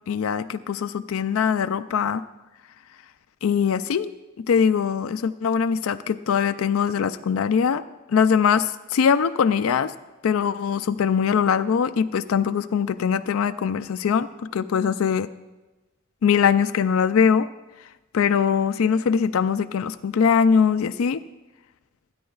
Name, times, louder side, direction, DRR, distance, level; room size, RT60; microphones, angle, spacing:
voice 1, 0.1-2.2 3.4-4.1 4.4-7.8 8.1-9.9 10.2-14.3 14.5-15.3 16.2-17.5 18.1-21.2, left 7 dB, 80° left, 10 dB, 0.4 m, -22 dB
25.5 x 9.4 x 2.4 m, 1.1 s
head